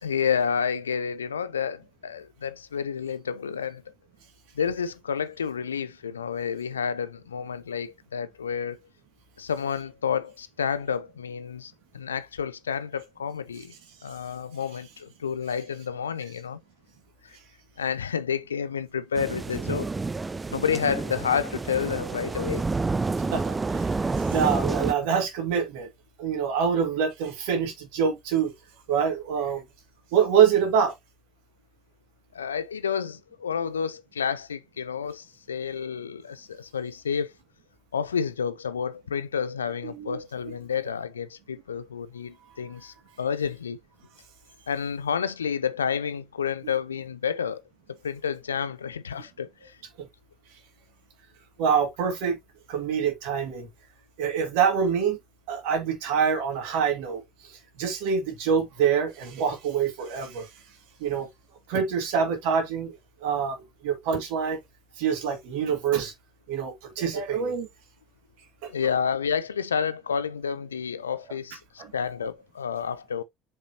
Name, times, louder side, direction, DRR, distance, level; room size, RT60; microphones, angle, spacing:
voice 1, 0.0-3.8 4.5-8.8 9.4-13.7 14.0-16.6 17.2-17.3 17.8-19.9 20.5-22.7 32.3-37.3 37.9-43.8 44.7-47.6 47.9-49.8 68.7-73.2, left 7 dB, 85° left, 0.5 m, -30 dB
sound 1, 19.2-24.9, right 3 dB, 20° right, 0.4 m, -29 dB
voice 2, 23.2-25.9 26.2-28.5 28.9-29.6 30.1-30.9 39.8-40.2 51.6-52.4 52.7-53.7 54.2-55.2 55.5-60.5 61.0-61.3 61.7-62.9 63.2-64.6 65.0-66.1 66.5-67.7 68.6-68.7 71.8-71.9, right 7 dB, 65° right, 2.4 m, -25 dB
7.0 x 5.2 x 2.8 m
figure-of-eight pair, 65°, 0 cm